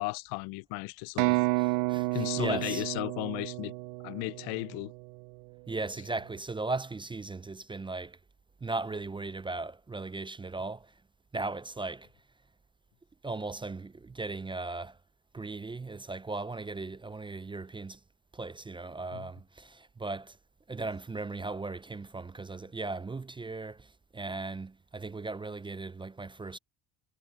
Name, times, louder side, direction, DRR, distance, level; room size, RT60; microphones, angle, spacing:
voice 1, 0.0-1.4 2.1-3.7 4.0-4.9 19.1-19.3, left 25 dB, 80° left, 0.7 m, -35 dB
sound 1, 1.2-5.0, right 25 dB, 85° right, 0.6 m, -31 dB
voice 2, 1.6-2.8 5.7-8.2 8.6-10.9 11.3-12.1 13.2-15.0 15.3-18.0 18.3-20.4 20.7-23.9 24.1-26.6, right 3 dB, 15° right, 0.5 m, -37 dB
supercardioid pair, 80°, 37 cm